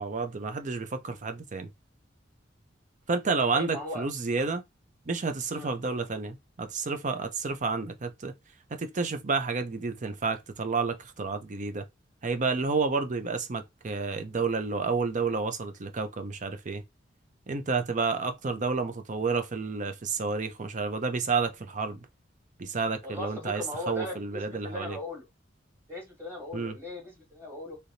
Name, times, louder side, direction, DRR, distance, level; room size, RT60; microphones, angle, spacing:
voice 1, 0.0-1.7 3.1-4.6 5.1-8.3 8.7-11.8 12.2-16.8 17.5-22.1 22.6-25.0 26.5-26.8, right 4 dB, 40° right, 0.6 m, -30 dB
voice 2, 3.5-4.1 5.5-5.7 23.0-25.3 25.9-27.8, left 2 dB, 15° right, 1.4 m, -38 dB
3.4 x 2.9 x 2.6 m
head